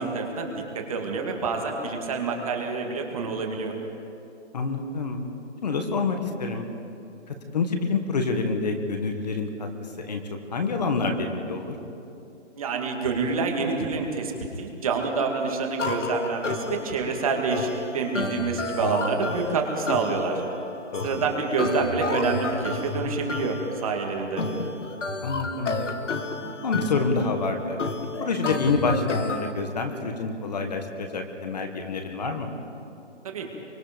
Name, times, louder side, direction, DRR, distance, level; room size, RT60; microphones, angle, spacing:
voice 1, 0.0-3.8 12.6-14.3 14.6-20.4 21.0-24.5 33.2-33.5, right 4 dB, 30° right, 2 dB, 2.2 m, -27 dB
voice 2, 4.5-5.2 5.6-6.7 7.3-9.7 10.0-10.2 10.5-11.8 20.9-21.2 25.2-25.8 26.6-27.8 28.2-32.5, left 4 dB, 35° left, 5 dB, 1.7 m, -27 dB
sound 1, 15.8-29.5, left 3 dB, 80° left, 2.0 m, -32 dB
25.0 x 24.0 x 5.3 m, 2.7 s
hypercardioid pair, 175°, 35 cm